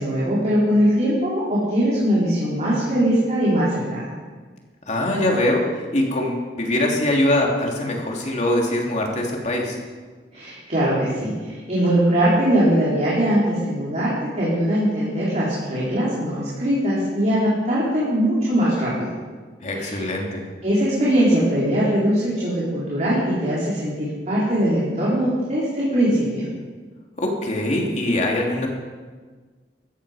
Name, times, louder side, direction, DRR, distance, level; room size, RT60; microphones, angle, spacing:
voice 1, 0.0-4.0 10.3-19.1 19.7-20.0 20.6-26.5, equal, 40° right, -8 dB, 3.9 m, -21 dB
voice 2, 4.9-5.6 5.9-9.8 19.6-20.4 27.2-28.7, left 1 dB, 45° left, 0 dB, 2.9 m, -22 dB
16.0 x 14.0 x 5.0 m, 1.4 s
head